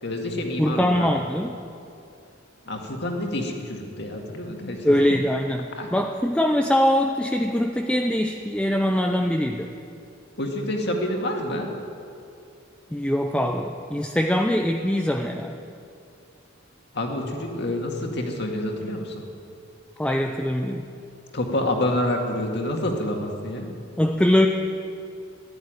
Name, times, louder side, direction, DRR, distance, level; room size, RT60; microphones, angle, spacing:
voice 1, 0.0-1.1 2.7-5.0 5.8-5.9 10.4-11.7 16.9-19.2 21.3-23.7, left 1 dB, 60° left, 2 dB, 2.1 m, -28 dB
voice 2, 0.6-1.5 4.8-9.7 12.9-15.5 20.0-20.8 24.0-24.5, left 1 dB, 5° left, 3 dB, 0.6 m, -22 dB
14.0 x 11.0 x 9.3 m, 2.5 s
head